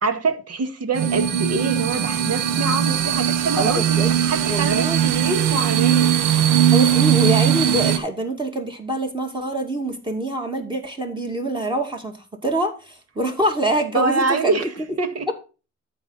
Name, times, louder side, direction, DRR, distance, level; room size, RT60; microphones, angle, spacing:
voice 1, 0.0-6.1 6.5-6.6 13.9-15.3, right 3 dB, 55° right, 2.1 m, -25 dB
sound 1, 0.9-8.0, right 10 dB, 90° right, 1.1 m, -19 dB
voice 2, 3.6-4.1 4.5-5.0 6.7-12.1 12.4-14.7, right 1 dB, 15° right, 2.4 m, -25 dB
13.5 x 4.9 x 4.1 m
cardioid pair, 90°, 30 cm